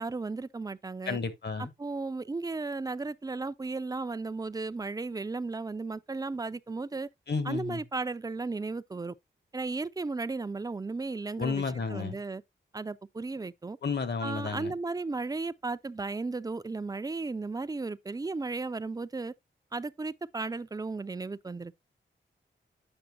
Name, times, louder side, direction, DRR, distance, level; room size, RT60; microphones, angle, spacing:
voice 1, 0.0-1.2 1.6-7.1 7.4-9.1 9.5-11.6 11.9-12.4 12.7-13.8 14.2-19.3 19.7-21.7, right 3 dB, 20° right, 0.4 m, -35 dB
voice 2, 1.1-1.7 7.3-7.8 11.4-12.2 13.8-14.7, left 5 dB, 60° left, 1.1 m, -32 dB
8.9 x 6.0 x 2.2 m
cardioid pair, 70°, 20 cm